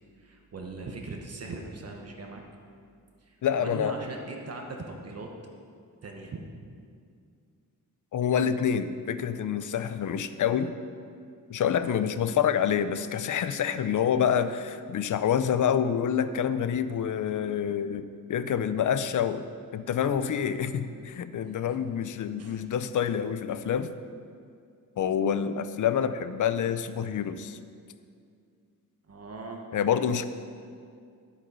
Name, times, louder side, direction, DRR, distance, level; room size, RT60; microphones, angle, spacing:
voice 1, 0.2-2.4 3.2-5.3 6.0-6.4 20.9-21.1 21.6-21.8 22.4-22.6 29.1-29.6, right 3 dB, 45° right, 1 dB, 1.2 m, -40 dB
voice 2, 3.4-3.9 8.1-10.7 11.5-19.5 19.7-23.9 25.0-27.6 29.7-30.2, left 8 dB, 60° left, 12 dB, 0.6 m, -27 dB
11.5 x 8.3 x 5.5 m, 2.3 s
wide cardioid pair, 130°, 35 cm